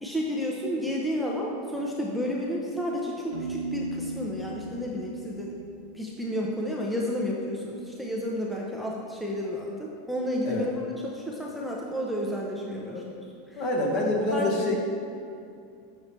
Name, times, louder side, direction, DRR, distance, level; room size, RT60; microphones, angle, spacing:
voice 1, 0.0-5.5 5.9-10.7 11.0-13.0 13.5-13.6 14.3-14.5, equal, ahead, -3 dB, 0.5 m, -31 dB
Piano, 3.3-7.0, right 3 dB, 90° right, 0.7 m, -38 dB
voice 2, 13.6-14.8, left 1 dB, 45° left, -1 dB, 1.2 m, -26 dB
6.4 x 5.4 x 3.1 m, 2.5 s
supercardioid pair, 140°, 0 cm